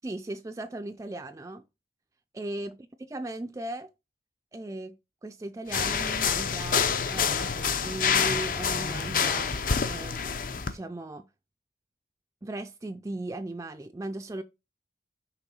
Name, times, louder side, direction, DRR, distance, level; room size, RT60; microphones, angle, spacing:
voice 1, 0.0-1.6 2.3-2.8 3.1-3.9 4.5-5.0 5.2-9.6 9.9-10.3 10.6-11.2 12.4-14.4, right 2 dB, 20° right, 0.3 m, -37 dB
sound 1, 5.7-10.7, left 6 dB, 50° left, 0.5 m, -27 dB
6.0 x 3.5 x 5.4 m
head